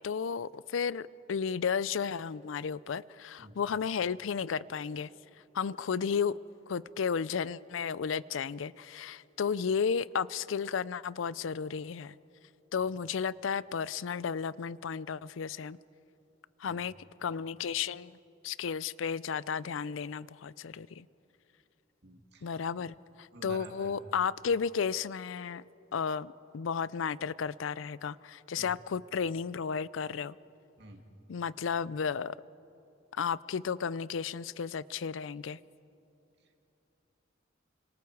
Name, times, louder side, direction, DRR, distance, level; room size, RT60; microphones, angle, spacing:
voice 1, 0.0-5.1 5.5-6.4 6.7-12.2 12.7-15.8 16.6-16.9 17.2-18.2 18.4-21.1 22.4-25.6 25.9-30.3 31.3-32.4 33.1-35.6, left 6 dB, 80° left, 19 dB, 0.5 m, -33 dB
voice 2, 22.0-22.6 23.3-24.0 28.6-28.7 30.8-31.0, right 2 dB, 60° right, 3 dB, 2.3 m, -50 dB
29.5 x 26.0 x 4.7 m, 2.9 s
head